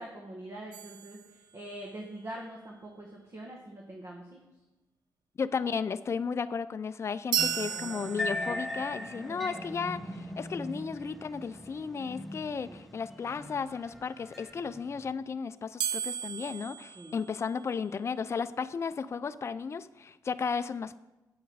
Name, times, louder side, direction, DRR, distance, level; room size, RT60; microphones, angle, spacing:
voice 1, 0.0-4.4 9.2-9.6 12.7-12.8 17.0-17.1, right 1 dB, 45° right, 0 dB, 1.7 m, -44 dB
sound 1, 0.7-2.0 7.3-8.8 15.8-17.9, right 9 dB, 85° right, 0.4 m, -35 dB
voice 2, 5.4-21.0, left 5 dB, 40° left, 12 dB, 0.4 m, -34 dB
sound 2, 7.4-15.1, equal, ahead, 0.9 m, -39 dB
8.9 x 8.0 x 4.7 m, 1.0 s
cardioid pair, 80°, 7 cm